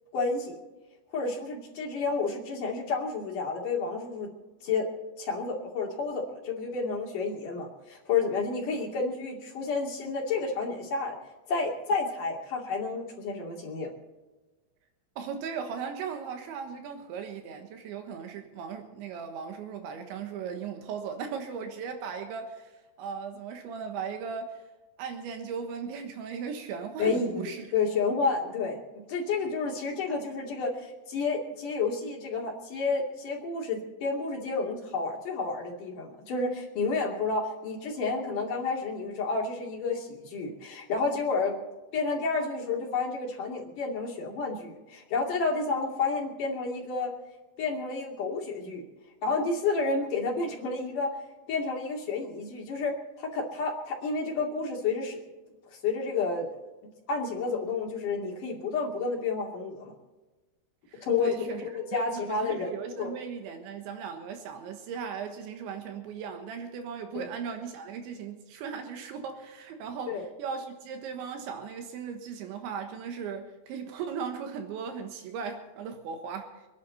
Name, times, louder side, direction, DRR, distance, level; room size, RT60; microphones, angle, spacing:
voice 1, 0.1-0.6 1.1-4.3 4.6-4.9 5.2-11.2 11.5-13.9 27.0-28.8 29.1-41.5 41.9-47.1 47.6-48.8 49.2-51.1 51.5-55.2 55.8-56.5 57.1-59.9 61.0-61.3 61.9-63.1 67.1-67.2 70.1-70.2, left 4 dB, 50° left, 3.7 m, -30 dB
voice 2, 15.2-24.6 25.0-27.6 60.9-61.6 61.9-76.6, right 6 dB, 80° right, 3.7 m, -37 dB
26.5 x 11.0 x 4.1 m
omnidirectional pair, 5.3 m